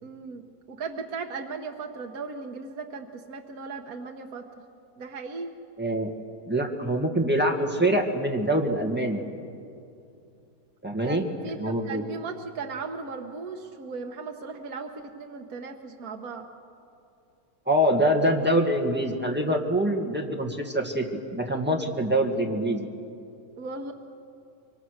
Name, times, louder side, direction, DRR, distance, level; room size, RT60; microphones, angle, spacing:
voice 1, 0.0-4.4 5.0-5.5 11.0-16.5 23.6-23.9, right 4 dB, 75° right, 3 dB, 1.5 m, -37 dB
voice 2, 5.8-6.1 6.5-9.2 10.8-11.3 11.6-12.0 17.7-21.1 21.3-22.9, right 1 dB, 5° right, 2 dB, 1.7 m, -25 dB
25.5 x 23.5 x 6.5 m, 2.6 s
omnidirectional pair, 1.6 m